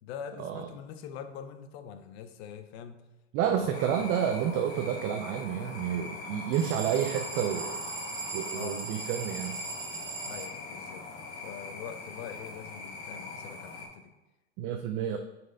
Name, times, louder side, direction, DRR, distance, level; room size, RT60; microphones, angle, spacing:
voice 1, 0.0-3.0 3.4-4.1 8.5-8.8 10.2-11.1 11.4-14.2, left 8 dB, 55° left, 9 dB, 0.8 m, -43 dB
voice 2, 3.3-7.8 8.3-9.6 14.6-15.2, right 9 dB, 35° right, 5 dB, 0.5 m, -30 dB
sound 1, 3.7-13.9, left 3 dB, 35° left, 1.6 m, -42 dB
sound 2, 6.5-10.5, right 4 dB, 85° right, 1.1 m, -39 dB
6.1 x 4.5 x 3.9 m, 1.0 s
hypercardioid pair, 105°, 37 cm